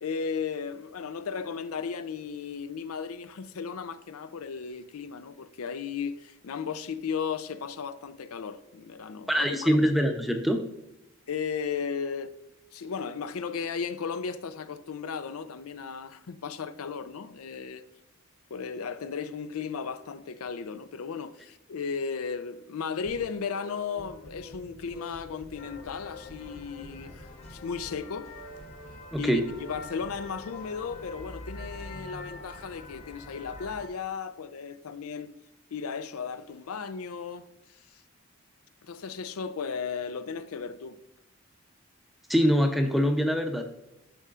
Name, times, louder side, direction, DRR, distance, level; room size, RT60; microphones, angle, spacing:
voice 1, 0.0-9.8 11.3-12.3 12.7-17.9 18.5-28.3 29.2-35.3 35.7-38.0 38.8-41.0, left 6 dB, 90° left, 0.5 m, -35 dB
voice 2, 9.3-10.6 29.1-29.4 42.3-43.6, equal, ahead, 0.6 m, -24 dB
sound 1, 23.0-33.1, left 1 dB, 70° left, 1.1 m, -47 dB
sound 2, 25.6-33.9, left 3 dB, 30° left, 0.9 m, -47 dB
12.5 x 5.5 x 2.5 m
head